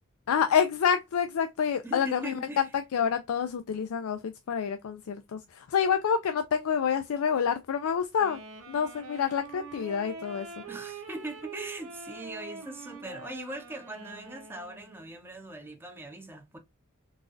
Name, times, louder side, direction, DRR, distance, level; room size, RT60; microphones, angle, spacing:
voice 1, 0.3-8.4 8.7-10.5, left 7 dB, 90° left, 0.4 m, -28 dB
voice 2, 1.8-2.7 10.7-16.6, right 1 dB, 10° right, 0.6 m, -40 dB
Wind instrument woodwind instrument, 8.2-15.1, right 4 dB, 90° right, 1.3 m, -44 dB
4.0 x 2.4 x 2.4 m
head